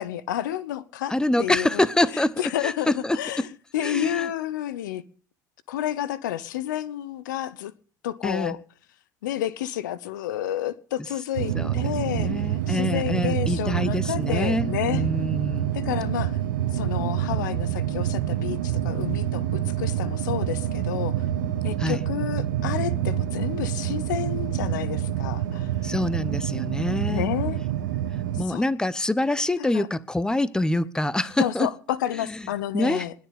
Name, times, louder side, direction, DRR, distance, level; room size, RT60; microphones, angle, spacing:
voice 1, 0.0-1.1 1.4-1.9 2.1-5.0 5.7-7.7 8.0-8.6 9.2-15.0 15.7-16.4 16.7-21.3 21.6-25.7 27.1-27.6 28.4-28.6 29.6-29.9 31.4-33.1, left 12 dB, 80° left, 1.0 m, -30 dB
voice 2, 1.1-3.5 3.8-4.3 8.2-8.6 11.5-11.7 12.0-15.7 21.8-22.0 25.8-27.3 28.4-31.7 32.3-32.4 32.7-33.0, left 1 dB, 5° left, 1.1 m, -26 dB
sound 1, 11.4-28.4, right 11 dB, 80° right, 1.6 m, -27 dB
20.5 x 6.9 x 8.6 m
hypercardioid pair, 75°, 10 cm